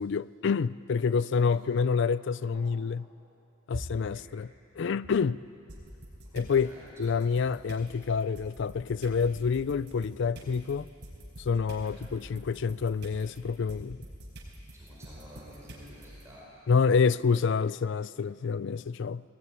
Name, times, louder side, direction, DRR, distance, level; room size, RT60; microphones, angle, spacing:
voice 1, 0.0-3.1 3.7-5.4 6.3-10.9 11.4-14.0 16.7-19.2, left 5 dB, 65° left, 0.4 m, -28 dB
voice 2, 3.7-4.3 6.6-6.9 11.6-12.1 14.7-16.5, equal, 15° right, 5.0 m, -46 dB
sound 1, 5.7-6.6 7.0-16.2, right 1 dB, 60° right, 4.6 m, -47 dB
19.0 x 18.5 x 9.5 m
head